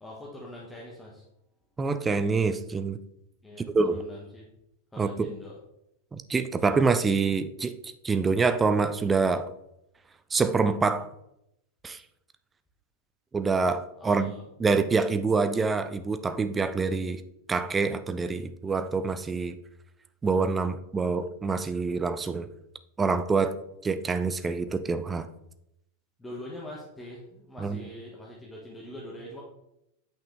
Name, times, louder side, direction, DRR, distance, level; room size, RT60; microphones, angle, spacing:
voice 1, 0.0-1.2 3.4-4.5 4.9-5.5 14.0-14.4 26.2-29.4, left 1 dB, 10° left, -4 dB, 1.5 m, -43 dB
voice 2, 1.8-3.0 3.7-4.0 5.0-5.3 6.1-9.5 10.3-11.1 11.8-12.0 13.3-14.3 14.6-17.2 17.5-19.6 20.2-22.5 23.0-23.6 23.8-25.3 27.6-27.8, right 4 dB, 15° right, 11 dB, 0.6 m, -26 dB
8.7 x 5.8 x 3.4 m, 0.81 s
figure-of-eight pair, 90°, 0 cm